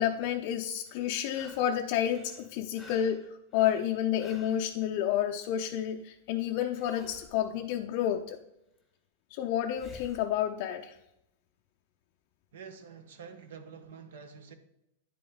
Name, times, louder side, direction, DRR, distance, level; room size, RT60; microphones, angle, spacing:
voice 1, 0.0-3.2 3.5-8.4 9.3-10.9, left 10 dB, 45° left, 0.4 m, -30 dB
sound 1, 0.9-1.8 2.1-4.7 6.7-7.4 9.8-10.3 13.2-13.3, left 1 dB, ahead, 1.1 m, -51 dB
voice 2, 12.5-14.5, right 6 dB, 70° right, 1.0 m, -47 dB
10.0 x 5.1 x 3.6 m
supercardioid pair, 160°, 0 cm